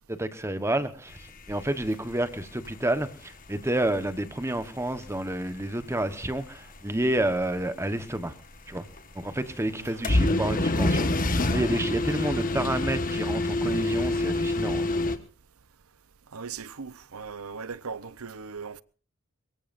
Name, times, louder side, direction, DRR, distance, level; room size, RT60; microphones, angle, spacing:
voice 1, 0.1-1.2 1.5-8.3 8.7-8.9 9.1-11.1 11.5-14.8, right 1 dB, 10° right, 1.2 m, -29 dB
sound 1, 1.1-2.7 3.0-3.1 3.4-3.5 4.0-4.4 4.7-5.0 5.3-5.4 5.6-5.8 6.3-6.5 6.8-7.6 8.2-8.3 8.6-8.7 9.0-9.3 9.6-9.7 10.0-15.2, left 2 dB, 40° left, 1.4 m, -26 dB
voice 2, 9.7-10.2 12.1-12.4 16.3-18.8, right 5 dB, 75° right, 0.8 m, -39 dB
24.0 x 22.5 x 2.6 m
head